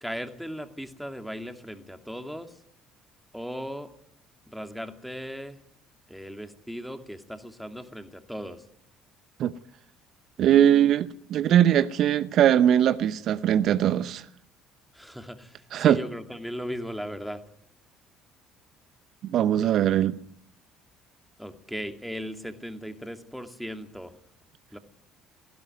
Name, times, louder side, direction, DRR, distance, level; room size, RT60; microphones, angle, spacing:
voice 1, 0.0-2.6 3.3-3.9 4.5-5.6 6.1-8.6 14.9-17.4 21.4-24.1 24.7-24.8, equal, ahead, 2.5 m, -37 dB
voice 2, 10.4-14.3 15.7-16.0 19.2-20.1, right 10 dB, 55° right, 0.8 m, -21 dB
18.0 x 16.0 x 9.3 m
figure-of-eight pair, 55°, 0 cm